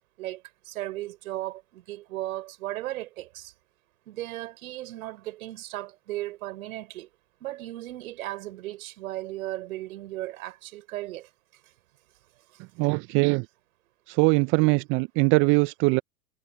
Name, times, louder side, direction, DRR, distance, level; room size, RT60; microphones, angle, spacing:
voice 1, 0.2-3.5 4.1-7.1 7.4-11.3, right 16 dB, 60° right, 5.7 m, -36 dB
voice 2, 12.8-13.5 14.1-16.0, right 29 dB, 25° right, 0.5 m, -22 dB
hypercardioid pair, 105°, 48 cm